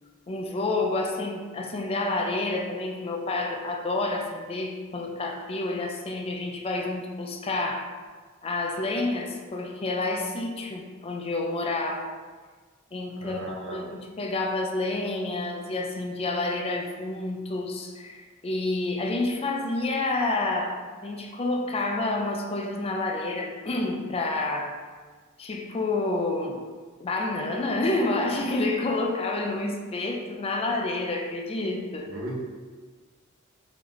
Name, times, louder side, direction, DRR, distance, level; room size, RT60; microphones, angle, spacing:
voice 1, 0.3-7.9 8.4-12.1 12.9-24.8 25.4-26.7 27.0-32.2, left 2 dB, 30° left, 2 dB, 0.4 m, -29 dB
voice 2, 13.2-13.8 32.1-32.4, right 1 dB, 85° right, -3 dB, 1.0 m, -36 dB
3.9 x 3.2 x 3.1 m, 1.5 s
head